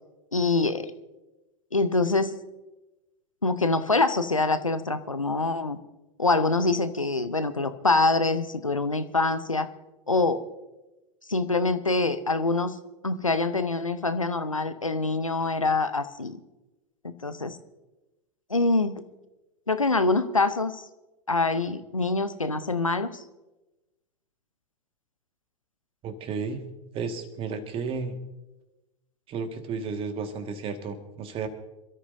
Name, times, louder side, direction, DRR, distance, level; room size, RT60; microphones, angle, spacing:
voice 1, 0.3-0.9 1.7-2.3 3.4-5.8 6.2-9.7 10.1-10.4 11.3-12.8 13.0-16.4 17.2-17.6 18.5-19.0 19.7-20.9 21.3-23.2, left 3 dB, 90° left, 12 dB, 0.8 m, -25 dB
voice 2, 26.0-26.6 26.9-28.1 29.3-31.5, right 5 dB, 35° right, 7 dB, 1.8 m, -33 dB
27.0 x 13.0 x 2.7 m, 1.0 s
figure-of-eight pair, 85°, 17 cm